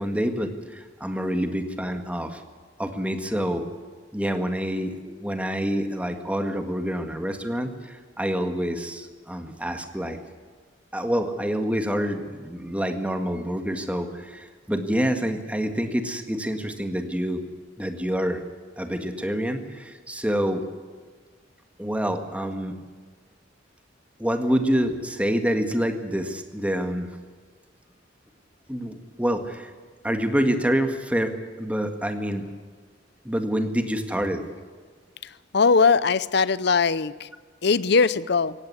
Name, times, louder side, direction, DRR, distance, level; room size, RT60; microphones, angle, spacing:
voice 1, 0.0-2.4 2.8-3.7 4.1-10.2 10.9-17.4 17.8-18.4 18.8-20.7 21.8-22.8 24.2-27.1 28.7-29.7 30.0-32.5 33.3-34.4, equal, 5° right, 6 dB, 1.8 m, -27 dB
voice 2, 35.5-37.3 37.6-38.5, left 5 dB, 65° left, 18 dB, 0.7 m, -20 dB
17.5 x 17.0 x 9.7 m, 1.5 s
head